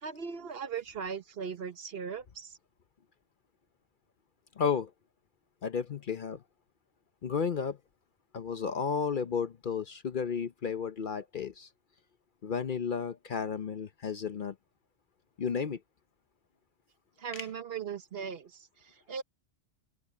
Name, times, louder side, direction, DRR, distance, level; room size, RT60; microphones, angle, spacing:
voice 1, 0.0-2.6 17.2-19.2, right 6 dB, 55° right, 1.1 m, -39 dB
voice 2, 4.6-4.9 5.6-6.4 7.2-7.8 8.3-11.7 12.4-14.5 15.4-15.8 17.3-17.5, left 6 dB, 50° left, 0.8 m, -33 dB
open air
omnidirectional pair, 1.2 m